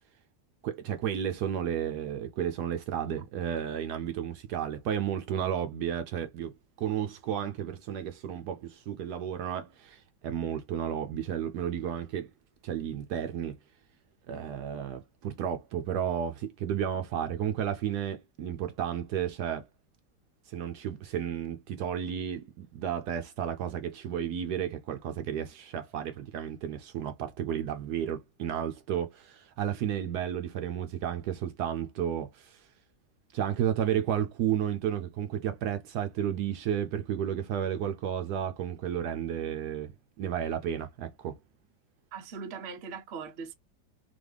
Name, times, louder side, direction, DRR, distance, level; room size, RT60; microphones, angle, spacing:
voice 1, 0.6-6.5 6.8-12.3 12.6-13.6 14.3-19.7 20.5-32.7 33.3-39.9 40.2-41.4, right 9 dB, 75° right, 1.1 m, -32 dB
voice 2, 42.1-43.5, right 5 dB, 50° right, 0.8 m, -40 dB
4.0 x 2.9 x 3.3 m
omnidirectional pair, 1.9 m